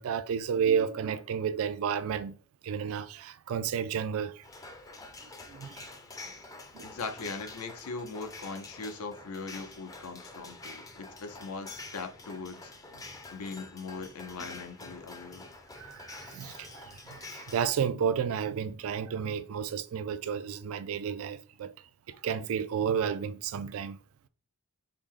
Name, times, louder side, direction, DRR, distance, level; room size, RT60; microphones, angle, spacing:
voice 1, 0.0-2.3 2.6-4.4 5.5-5.9 6.2-6.3 6.7-6.9 15.8-21.7 22.1-24.0, right 7 dB, 65° right, 0.3 m, -32 dB
sound 1, 4.4-17.7, left 3 dB, 15° left, 0.4 m, -47 dB
voice 2, 6.8-12.7 13.3-15.5, left 4 dB, 85° left, 0.6 m, -40 dB
4.6 x 2.1 x 3.6 m
head